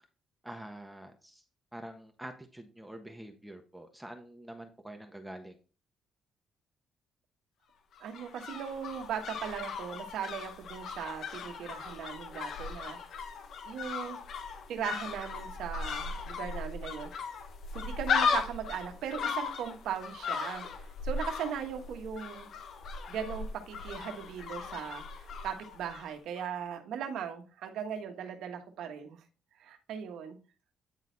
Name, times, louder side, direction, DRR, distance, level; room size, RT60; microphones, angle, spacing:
voice 1, 0.4-1.4 1.7-5.6, right 1 dB, 5° right, 5 dB, 1.3 m, -46 dB
sound 1, 7.9-26.1 26.4-26.5, left 5 dB, 70° left, 1.1 m, -37 dB
voice 2, 8.0-13.0 13.6-14.2 14.7-17.1 17.7-20.7 21.0-22.5 23.1-29.2 29.6-30.4, right 8 dB, 80° right, 6 dB, 1.4 m, -38 dB
9.6 x 4.1 x 4.0 m, 0.34 s
cardioid pair, 90°, 0 cm